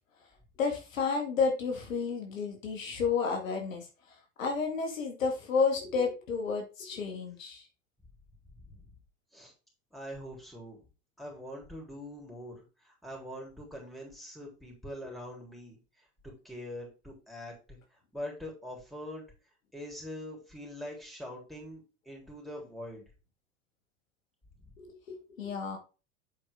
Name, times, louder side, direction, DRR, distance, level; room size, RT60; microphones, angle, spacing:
voice 1, 0.6-7.7 24.8-25.8, left 5 dB, 85° left, 2 dB, 2.1 m, -31 dB
voice 2, 9.9-10.8 11.2-15.8 16.2-17.8 18.1-19.2 19.7-23.0 24.6-24.7, left 1 dB, ahead, -1 dB, 3.7 m, -43 dB
8.1 x 5.1 x 3.7 m, 0.32 s
hypercardioid pair, 100°, 39 cm